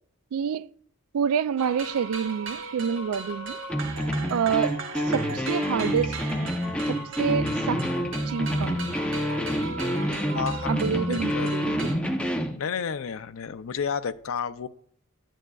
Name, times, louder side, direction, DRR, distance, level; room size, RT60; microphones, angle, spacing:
voice 1, 0.3-0.7 1.1-3.6 4.3-4.8 5.0-6.2 6.9-7.8 8.3-9.0 10.7-11.9, right 7 dB, 75° right, 0.3 m, -28 dB
sound 1, 1.6-11.9, right 3 dB, 60° right, 1.3 m, -37 dB
sound 2, 3.7-12.6, equal, 5° left, 0.7 m, -28 dB
voice 2, 10.3-10.8 11.1-11.6 12.6-14.7, left 6 dB, 70° left, 0.5 m, -31 dB
11.0 x 9.1 x 2.3 m
head